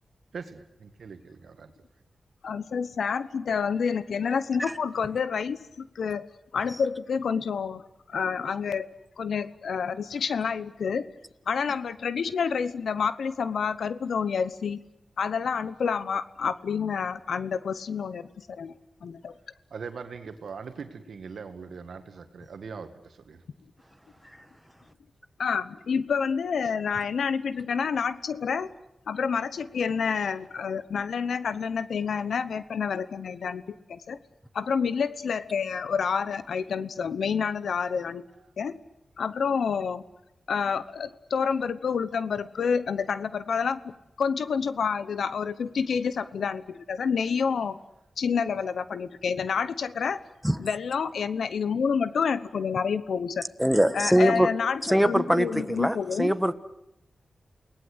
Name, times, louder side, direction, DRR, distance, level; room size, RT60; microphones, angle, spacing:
voice 1, 0.3-1.7 19.7-23.4, right 5 dB, 80° right, 8 dB, 1.9 m, -41 dB
voice 2, 2.4-6.3 6.5-7.8 8.1-8.9 9.2-11.1 11.5-14.8 15.2-18.7 19.0-19.3 25.4-28.7 29.1-33.6 33.9-34.2 34.5-38.2 38.6-38.8 39.2-40.0 40.5-43.9 44.2-47.8 48.2-50.2 50.6-53.4 53.9-56.3, left 6 dB, 85° left, 14 dB, 1.0 m, -28 dB
voice 3, 53.6-54.5 54.8-56.5, equal, 5° right, 11 dB, 1.5 m, -22 dB
29.0 x 18.5 x 8.2 m, 0.86 s
cardioid pair, 55°, 0 cm